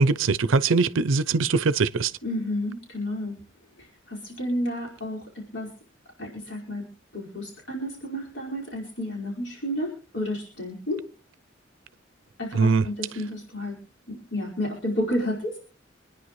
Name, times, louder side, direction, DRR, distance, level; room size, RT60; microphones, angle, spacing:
voice 1, 0.0-2.1 12.5-12.9, right 4 dB, 90° right, 0.6 m, -21 dB
voice 2, 2.2-3.4 3.8-5.7 6.2-6.8 7.1-11.0 12.4-13.7 14.1-15.6, left 1 dB, 65° left, 5.0 m, -31 dB
26.5 x 10.0 x 3.1 m
head